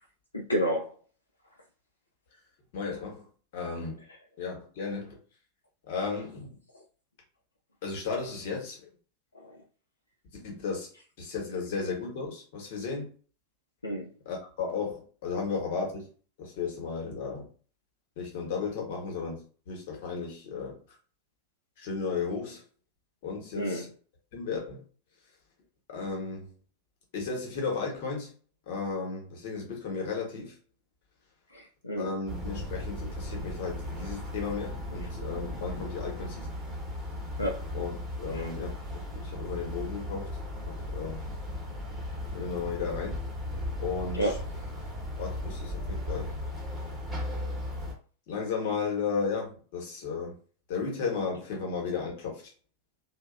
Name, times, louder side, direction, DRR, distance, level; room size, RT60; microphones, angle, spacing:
voice 1, 0.3-0.9 9.3-9.5 13.8-14.1 23.6-23.8 31.5-32.1 37.4-37.6 38.3-38.5 44.1-44.4, equal, 80° left, 0.4 m, -30 dB
voice 2, 2.7-3.3 3.5-4.0 4.4-5.2 5.9-6.6 7.8-8.9 10.4-10.9 11.2-13.1 14.2-16.1 16.4-17.5 18.2-20.8 21.8-22.6 23.2-23.9 24.3-24.8 25.9-26.5 27.1-28.3 28.7-30.5 32.0-36.5 37.7-40.3 40.6-41.3 42.3-43.3 43.8-44.3 45.2-46.3 48.3-50.4 50.7-52.4, left 5 dB, 50° left, 1.1 m, -34 dB
sound 1, 32.3-47.9, left 1 dB, 10° right, 1.0 m, -36 dB
2.8 x 2.2 x 2.4 m
figure-of-eight pair, 90°, 0 cm